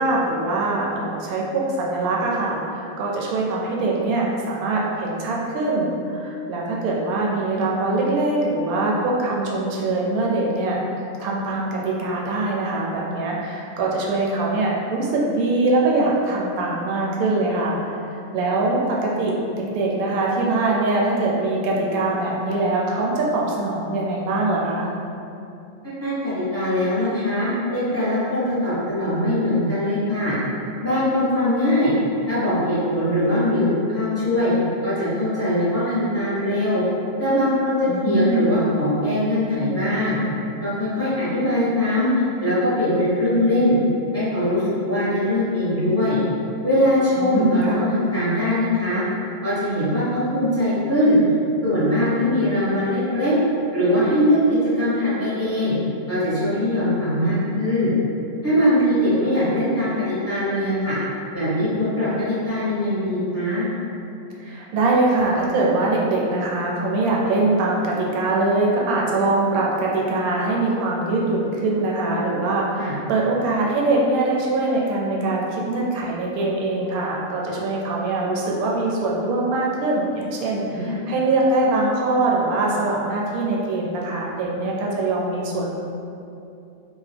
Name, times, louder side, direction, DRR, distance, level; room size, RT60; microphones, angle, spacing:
voice 1, 0.0-18.0 18.3-24.9 37.9-38.6 47.2-48.0 64.4-85.7, right 2 dB, 75° right, -3 dB, 1.0 m, -23 dB
voice 2, 26.0-30.4 30.8-31.9 32.3-34.5 34.8-36.8 37.2-40.2 40.6-43.7 44.1-46.2 46.6-49.0 49.4-51.2 51.6-53.3 53.7-55.7 56.1-57.9 58.4-61.0 61.3-63.6 72.8-73.0 80.7-81.0, left 1 dB, 15° left, -12 dB, 0.6 m, -21 dB
2.8 x 2.1 x 3.3 m, 2.7 s
omnidirectional pair, 1.6 m